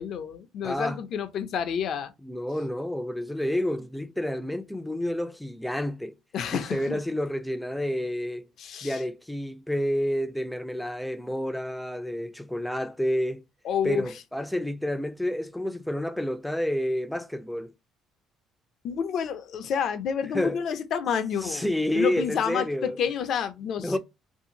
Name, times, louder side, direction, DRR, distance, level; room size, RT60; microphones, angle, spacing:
voice 1, 0.0-2.1 6.3-7.0 8.6-9.0 13.6-14.1 18.8-21.7 21.9-24.0, left 7 dB, 60° left, 0.4 m, -29 dB
voice 2, 0.6-1.0 2.2-6.1 6.5-8.5 8.8-13.4 13.8-17.7 20.3-20.6 21.4-23.0 23.8-24.0, left 1 dB, 5° left, 0.4 m, -29 dB
2.6 x 2.4 x 2.7 m
cardioid pair, 90°, 0 cm